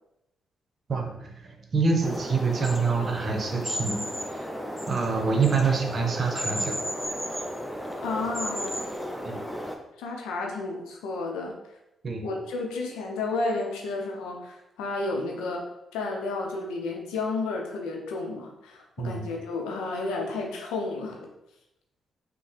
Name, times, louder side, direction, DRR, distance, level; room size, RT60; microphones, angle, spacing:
voice 1, 0.9-4.5 4.9-6.8 9.2-9.4 12.0-12.3 19.0-19.2, right 4 dB, 50° right, 3 dB, 0.8 m, -26 dB
sound 1, 2.0-9.8, equal, ahead, 0.7 m, -33 dB
voice 2, 8.0-8.8 10.0-11.6 12.2-15.7 15.9-21.3, left 3 dB, 75° left, 1 dB, 0.6 m, -32 dB
5.4 x 2.1 x 3.2 m, 0.89 s
hypercardioid pair, 40°, 0 cm